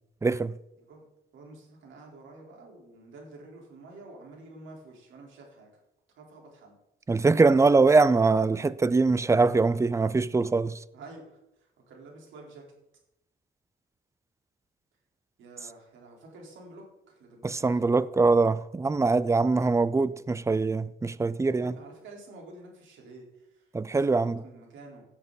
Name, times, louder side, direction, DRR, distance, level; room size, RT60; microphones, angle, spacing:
voice 1, 0.2-0.5 7.1-10.8 17.4-21.7 23.7-24.4, right 3 dB, 15° right, 0.5 m, -23 dB
voice 2, 1.3-5.7 6.2-6.8 10.9-12.6 15.4-17.9 21.4-25.1, right 2 dB, 75° right, 4.0 m, -49 dB
16.5 x 7.2 x 4.1 m
cardioid pair, 90°, 20 cm